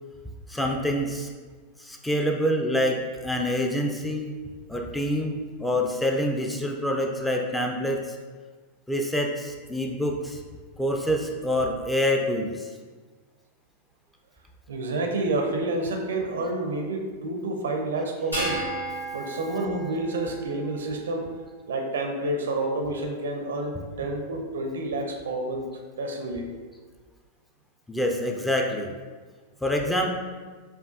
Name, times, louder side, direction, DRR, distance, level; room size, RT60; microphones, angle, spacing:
voice 1, 0.5-1.3 1.8-4.3 4.7-8.2 8.9-10.4 10.8-12.7 27.9-28.9 29.6-30.1, equal, 5° left, 2 dB, 0.4 m, -26 dB
voice 2, 14.7-18.7 19.1-21.3 21.7-25.7 26.0-26.5, right 2 dB, 65° right, 3 dB, 0.5 m, -29 dB
sound 1, 18.3-20.9, right 1 dB, 90° left, 1.1 m, -33 dB
5.1 x 2.3 x 2.5 m, 1.4 s
figure-of-eight pair, 90°, 0 cm